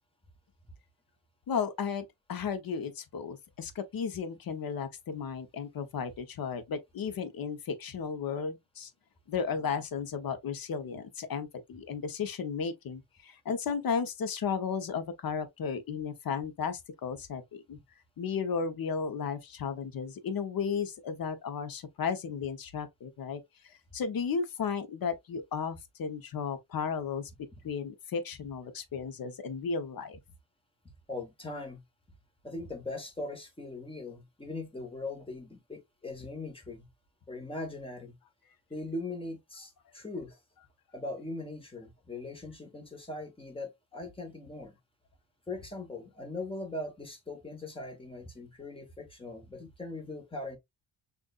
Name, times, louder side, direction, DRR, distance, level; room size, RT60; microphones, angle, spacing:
voice 1, 1.5-8.9 9.3-17.8 18.2-23.4 23.9-27.3 27.6-30.2, left 6 dB, 50° left, 0.9 m, -34 dB
voice 2, 31.1-31.8 32.4-36.9 37.3-38.2 38.7-40.4 40.9-44.8 45.5-50.6, left 2 dB, 10° left, 1.3 m, -40 dB
6.3 x 2.6 x 2.4 m
cardioid pair, 130°, 46 cm